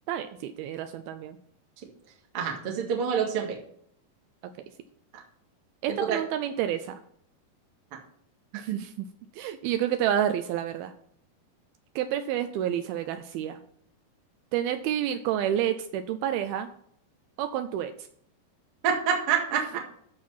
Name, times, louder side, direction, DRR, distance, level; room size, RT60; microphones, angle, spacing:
voice 1, 0.1-1.4 5.8-7.0 8.5-9.1 9.3-10.9 12.0-13.6 14.5-16.7 17.4-17.9, right 10 dB, 85° right, 9 dB, 2.2 m, -29 dB
voice 2, 2.3-3.6 6.0-6.2 18.8-19.8, right 7 dB, 50° right, 0 dB, 1.9 m, -26 dB
13.5 x 4.5 x 5.5 m, 0.66 s
omnidirectional pair, 4.9 m